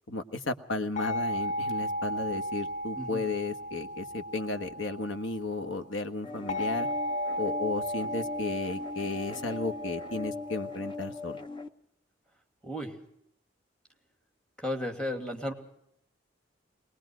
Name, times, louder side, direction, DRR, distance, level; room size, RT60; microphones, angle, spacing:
voice 1, 0.1-6.9 7.4-11.4, left 3 dB, 75° left, 8 dB, 1.5 m, -34 dB
sound 1, 1.0-5.6 6.5-11.1, equal, 40° left, 1.6 m, -35 dB
sound 2, 6.2-11.7, left 4 dB, 25° left, 0.9 m, -39 dB
voice 2, 12.6-12.9 14.6-15.5, left 1 dB, 5° left, 4 dB, 2.6 m, -34 dB
21.5 x 20.5 x 6.3 m, 0.75 s
head